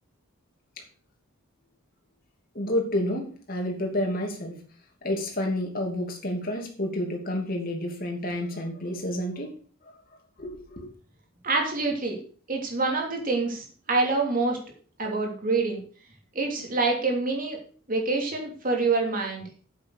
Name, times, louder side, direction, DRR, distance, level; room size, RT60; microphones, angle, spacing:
voice 1, 2.5-4.5 5.0-9.5 10.4-10.9, left 1 dB, 40° left, 1 dB, 2.8 m, -29 dB
voice 2, 11.4-12.2 12.5-14.6 15.0-15.8 16.3-17.6 17.9-19.4, right 3 dB, 40° right, 1 dB, 3.0 m, -26 dB
8.4 x 7.6 x 6.4 m, 0.43 s
head